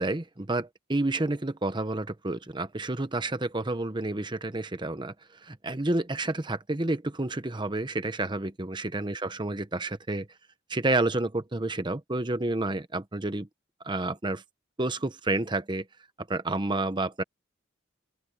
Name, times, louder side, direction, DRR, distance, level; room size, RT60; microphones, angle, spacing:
voice 1, 0.0-5.1 5.4-10.3 10.7-13.5 13.8-14.4 14.8-15.9 16.3-17.2, right 2 dB, 25° right, 1.0 m, -29 dB
open air
head